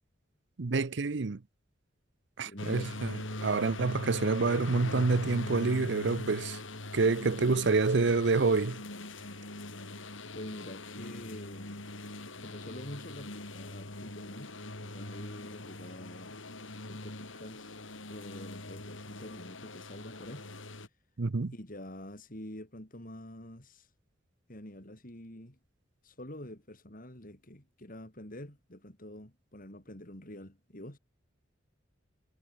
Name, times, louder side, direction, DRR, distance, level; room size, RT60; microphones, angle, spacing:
voice 1, 0.6-1.4 2.4-6.6 6.9-8.8 21.2-21.5, right 3 dB, 65° right, 0.7 m, -28 dB
voice 2, 2.4-2.9 10.3-11.9 12.4-14.5 14.8-16.4 16.8-17.8 18.1-20.4 21.5-23.9 24.5-25.6 26.0-31.0, left 1 dB, 45° left, 4.7 m, -46 dB
sound 1, 2.6-20.9, left 2 dB, 85° left, 5.9 m, -42 dB
head